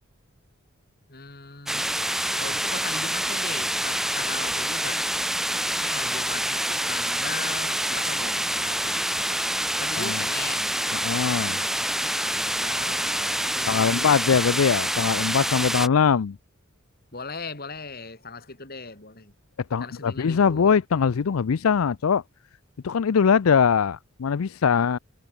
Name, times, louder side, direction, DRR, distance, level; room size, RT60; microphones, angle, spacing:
voice 1, 1.1-1.9 2.4-5.0 5.8-9.4 9.8-10.7 11.4-14.1 17.1-19.3 19.8-20.8, left 4 dB, 45° left, 3.9 m, -39 dB
sound 1, 1.7-15.9, right 1 dB, ahead, 0.8 m, -27 dB
voice 2, 10.9-11.6 13.7-16.4 19.7-22.2 22.8-25.0, left 6 dB, 80° left, 0.5 m, -22 dB
head